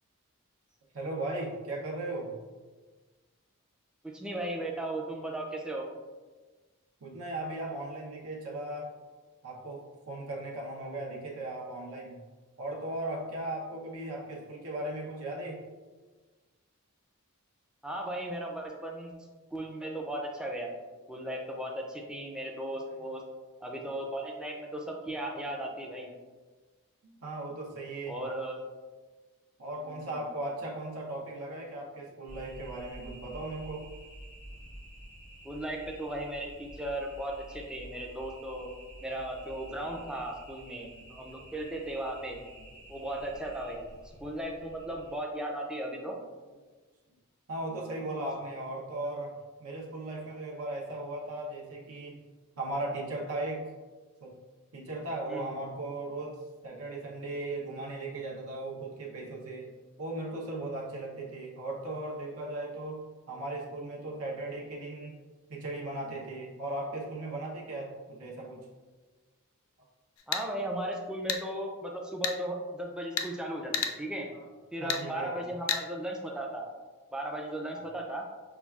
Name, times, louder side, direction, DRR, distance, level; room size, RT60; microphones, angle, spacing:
voice 1, 0.9-2.3 7.0-8.9 9.4-12.2 12.6-15.6 22.9-23.0 27.0-28.2 29.6-33.9 43.4-43.5 47.5-52.2 52.6-53.7 54.2-54.3 54.7-59.7 60.0-65.2 65.5-68.7 74.3-74.5 74.8-75.5 77.7-77.8, right 2 dB, 80° right, -3 dB, 0.7 m, -37 dB
voice 2, 4.0-5.9 17.8-19.1 19.5-20.7 21.1-23.2 23.6-26.1 28.1-28.6 29.8-30.3 35.4-38.7 39.0-42.4 42.9-43.9 44.2-46.2 48.0-48.2 55.3-55.6 70.3-74.3 74.7-76.6 77.1-78.2, right 1 dB, 5° right, 0 dB, 0.4 m, -36 dB
sound 1, 32.3-45.2, right 1 dB, 35° right, 1.0 m, -50 dB
sound 2, 70.2-70.4 71.3-71.4 72.2-72.4 73.2-73.3 73.7-74.0 74.9-75.0 75.7-75.8, left 7 dB, 70° left, 0.4 m, -30 dB
5.7 x 2.3 x 2.3 m, 1.3 s
head